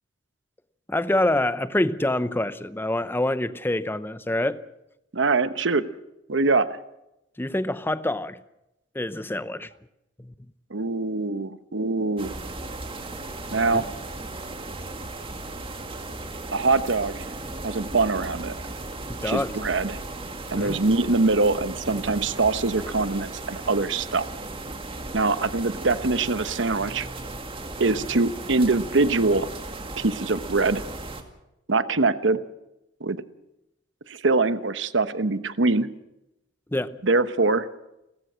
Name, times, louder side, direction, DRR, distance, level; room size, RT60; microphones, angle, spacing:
voice 1, 0.9-4.6 7.4-8.4 8.9-9.7 10.2-10.3 13.7-13.8 19.1-19.6 20.5-20.8 36.7-37.0, left 1 dB, 10° left, 13 dB, 0.7 m, -26 dB
voice 2, 5.1-5.9 6.3-6.8 10.7-12.3 13.5-13.8 16.5-17.3 17.6-18.5 19.2-20.0 20.5-24.2 25.1-27.1 27.8-29.5 30.0-30.8 31.7-32.4 33.0-33.2 34.1-35.9 37.0-37.7, right 3 dB, 75° right, 12 dB, 1.0 m, -23 dB
sound 1, 12.2-31.2, right 2 dB, 30° right, 2.2 m, -36 dB
30.0 x 14.5 x 6.3 m, 0.89 s
head